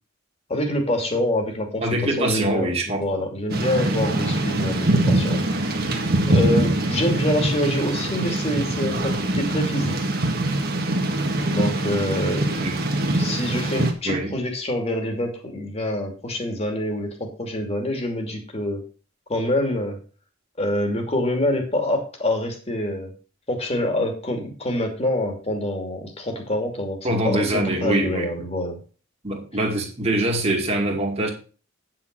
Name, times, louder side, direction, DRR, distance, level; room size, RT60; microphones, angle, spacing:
voice 1, 0.5-1.9 2.2-5.4 6.3-9.9 11.5-12.7 13.1-18.8 19.3-20.0 20.6-23.1 23.5-27.0 27.2-28.8, left 1 dB, 30° left, 3 dB, 2.6 m, -26 dB
voice 2, 1.8-3.2 12.6-12.8 14.0-14.4 27.0-28.3 29.2-31.3, right 1 dB, 30° right, 0 dB, 2.4 m, -24 dB
Thunder / Rain, 3.5-13.9, right 1 dB, 50° right, 1.8 m, -23 dB
9.6 x 6.0 x 6.1 m, 0.37 s
head